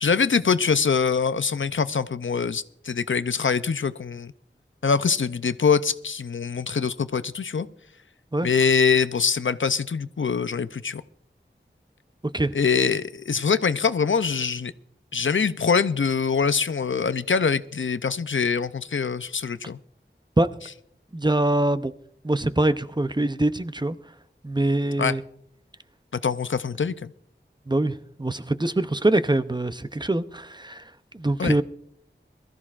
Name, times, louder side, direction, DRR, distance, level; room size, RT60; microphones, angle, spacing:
voice 1, 0.0-4.3 4.8-7.7 8.4-11.0 12.5-14.7 15.1-19.8 25.0-25.2 26.1-27.1 31.4-31.6, left 5 dB, 80° left, 0.5 m, -24 dB
voice 2, 21.1-21.9 22.2-24.0 24.4-25.2 27.7-30.8 31.1-31.6, right 1 dB, 20° right, 0.6 m, -23 dB
22.5 x 14.0 x 2.5 m
wide cardioid pair, 45°, 20 cm